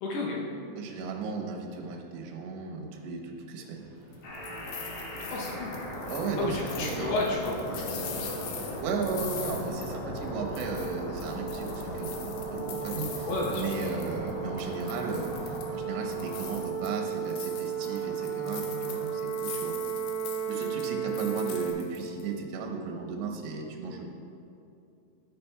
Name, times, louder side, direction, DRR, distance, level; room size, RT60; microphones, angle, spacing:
voice 1, 0.0-0.4 5.2-5.7 6.4-8.3 13.3-13.7, left 2 dB, 75° left, -3 dB, 2.5 m, -32 dB
voice 2, 0.8-3.8 6.1-7.1 8.5-13.3 13.5-19.8 20.5-24.0, right 4 dB, 75° right, 1 dB, 3.0 m, -35 dB
Subway metro underground, 3.7-15.4, equal, 55° right, 1.5 m, -51 dB
sound 1, 4.1-10.3 10.6-14.3 14.6-15.8 16.1-22.2, left 7 dB, 90° left, 2.2 m, -43 dB
sound 2, 4.2-21.7, right 4 dB, 55° left, 2.8 m, -35 dB
13.0 x 8.4 x 2.3 m, 2.6 s
omnidirectional pair, 5.6 m